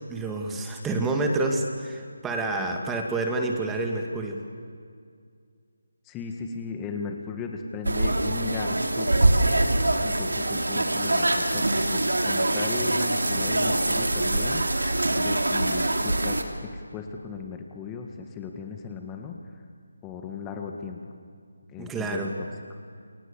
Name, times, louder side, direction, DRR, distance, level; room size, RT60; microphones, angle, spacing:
voice 1, 0.1-4.4 21.8-22.4, right 2 dB, 10° right, 2 dB, 2.2 m, -28 dB
voice 2, 6.1-9.3 10.0-14.9 15.2-19.4 20.0-21.0 21.7-22.3 22.7-22.8, left 5 dB, 15° left, 3 dB, 1.9 m, -37 dB
sound 1, 7.8-16.4, right 2 dB, 80° right, 3.2 m, -24 dB
30.0 x 28.0 x 7.1 m, 2.2 s
figure-of-eight pair, 155°, 0 cm